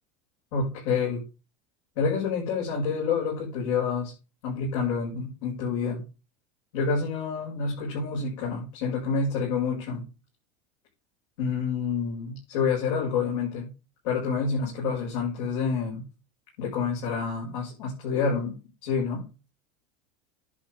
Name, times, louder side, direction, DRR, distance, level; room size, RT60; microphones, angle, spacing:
voice 1, 0.5-1.2 2.0-4.1 4.4-6.0 6.7-10.1 11.4-13.7 14.0-16.1 16.6-18.6 18.8-19.2, left 5 dB, 80° left, -5 dB, 5.8 m, -28 dB
10.5 x 8.2 x 3.6 m, 0.31 s
supercardioid pair, 130°, 16 cm